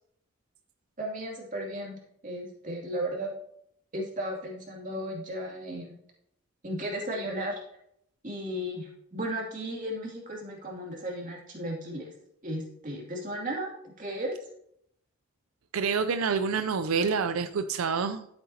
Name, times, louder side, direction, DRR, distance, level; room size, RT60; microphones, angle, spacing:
voice 1, 1.0-3.3 3.9-6.0 6.6-7.6 8.2-12.1 12.4-14.3, right 1 dB, 40° right, -2 dB, 2.5 m, -35 dB
voice 2, 15.7-18.3, right 5 dB, 85° right, 10 dB, 0.5 m, -27 dB
12.5 x 7.8 x 2.8 m, 0.74 s
head